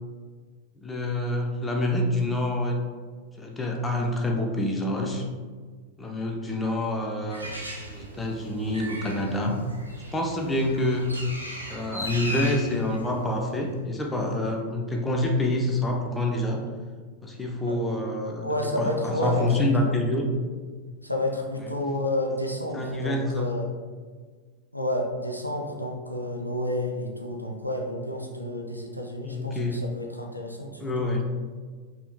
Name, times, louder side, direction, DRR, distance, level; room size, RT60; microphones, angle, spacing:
voice 1, 0.8-2.8 3.4-5.2 6.0-7.5 7.9-9.6 10.1-11.1 11.7-16.6 17.2-18.5 18.8-20.2 22.7-23.5 29.3-29.8 30.8-31.2, left 1 dB, 10° left, 0 dB, 0.6 m, -27 dB
Bird, 7.3-13.8, equal, 85° right, 0.6 m, -38 dB
voice 2, 18.4-20.0 21.0-23.6 24.7-31.1, left 1 dB, 90° left, 1 dB, 0.4 m, -30 dB
5.2 x 2.8 x 2.2 m, 1.5 s
figure-of-eight pair, 90°, 0 cm